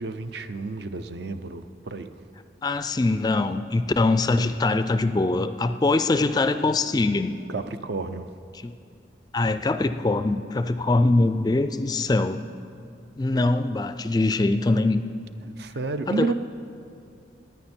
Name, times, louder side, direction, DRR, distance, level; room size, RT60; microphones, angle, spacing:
voice 1, 0.0-2.1 7.5-8.3 13.3-13.4 15.4-16.3, right 3 dB, 65° right, 10 dB, 0.6 m, -31 dB
voice 2, 2.6-7.4 8.5-8.7 9.3-12.4 13.2-15.0 16.1-16.3, left 2 dB, 20° left, 10 dB, 0.3 m, -23 dB
19.0 x 9.4 x 4.4 m, 2.6 s
head